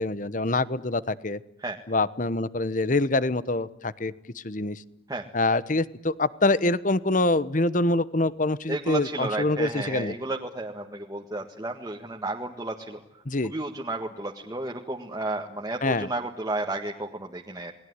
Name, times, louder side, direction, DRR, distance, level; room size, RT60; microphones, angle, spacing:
voice 1, 0.0-1.4 1.9-4.8 5.3-10.2 13.2-13.5 15.8-16.1, left 2 dB, 45° left, 16 dB, 1.1 m, -25 dB
voice 2, 8.7-13.0 13.4-17.7, right 2 dB, 20° right, 0 dB, 1.7 m, -32 dB
29.0 x 20.0 x 9.7 m, 0.79 s
head